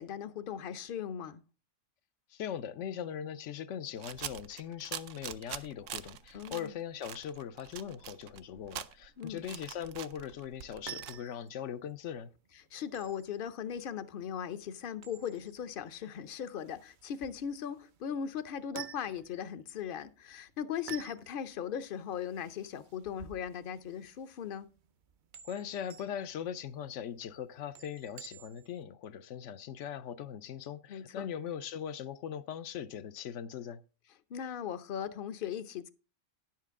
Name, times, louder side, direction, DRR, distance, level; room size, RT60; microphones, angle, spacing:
voice 1, 0.0-1.4 6.3-6.7 9.2-9.4 12.7-24.7 30.9-31.3 34.3-35.9, left 8 dB, 55° left, 0.7 m, -38 dB
voice 2, 2.3-12.3 25.4-33.8, left 9 dB, 75° left, 0.9 m, -40 dB
sound 1, 4.0-6.7 7.0-11.1, right 11 dB, 80° right, 0.9 m, -44 dB
sound 2, 10.6-28.8, right 9 dB, 55° right, 0.6 m, -52 dB
10.5 x 7.5 x 3.6 m
omnidirectional pair, 1.3 m